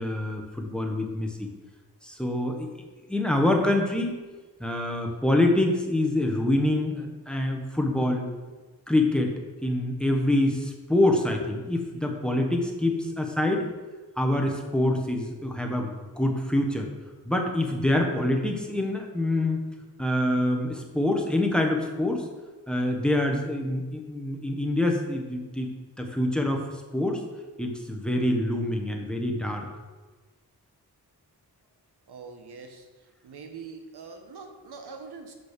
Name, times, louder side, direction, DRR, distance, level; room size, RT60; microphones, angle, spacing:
voice 1, 0.0-1.5 2.0-2.7 3.1-4.1 4.6-8.3 8.9-13.7 14.2-16.9 17.2-19.6 20.0-22.3 22.7-25.7 26.0-27.2 27.6-29.7, left 1 dB, ahead, 2 dB, 1.3 m, -26 dB
voice 2, 32.1-32.9 33.2-35.3, right 5 dB, 85° right, 4 dB, 1.1 m, -43 dB
6.4 x 6.1 x 6.7 m, 1.3 s
wide cardioid pair, 75°, 38 cm